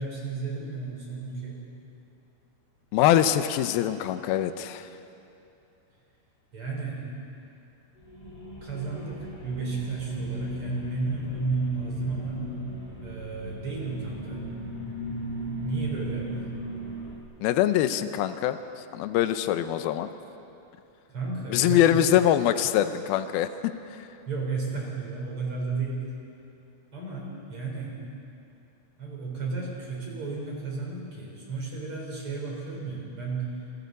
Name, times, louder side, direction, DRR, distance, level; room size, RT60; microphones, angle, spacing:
voice 1, 0.0-1.6 6.5-7.0 8.6-12.5 13.0-14.5 15.6-16.5 21.1-22.0 24.3-26.1 26.9-28.0 29.0-33.5, right 4 dB, 35° right, -3 dB, 4.8 m, -33 dB
voice 2, 2.9-4.9 17.4-18.6 18.9-20.1 21.5-24.0, left 11 dB, 80° left, 10 dB, 2.6 m, -23 dB
sound 1, 8.0-17.2, equal, 15° left, 2.6 m, -35 dB
28.0 x 22.5 x 4.1 m, 2.7 s
omnidirectional pair, 4.3 m